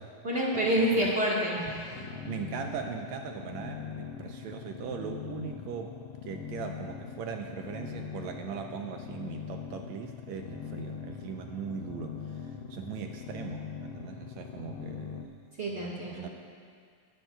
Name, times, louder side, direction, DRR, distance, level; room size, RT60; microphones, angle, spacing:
voice 1, 0.2-2.0 15.6-16.3, equal, 50° right, -5 dB, 0.7 m, -28 dB
voice 2, 0.8-1.1 2.0-6.0 6.2-15.3 15.7-16.3, right 7 dB, 80° right, 4 dB, 1.6 m, -40 dB
sound 1, 1.9-15.2, left 7 dB, 85° left, 1.6 m, -41 dB
21.0 x 12.0 x 2.3 m, 2.1 s
omnidirectional pair, 3.8 m